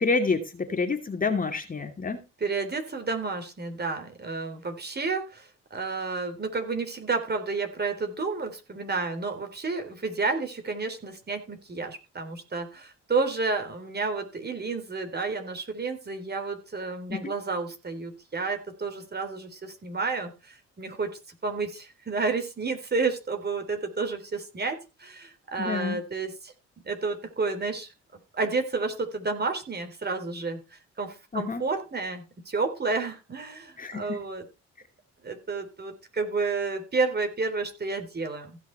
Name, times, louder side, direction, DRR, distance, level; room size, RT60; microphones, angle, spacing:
voice 1, 0.0-2.2 17.1-17.3 25.6-26.0 31.3-31.6 33.8-34.2, left 4 dB, 30° left, 5 dB, 2.5 m, -28 dB
voice 2, 2.4-26.5 26.8-27.9 28.3-34.5 35.2-38.6, right 4 dB, 35° right, 6 dB, 3.7 m, -31 dB
15.5 x 6.2 x 4.6 m, 0.29 s
cardioid pair, 90°, 30 cm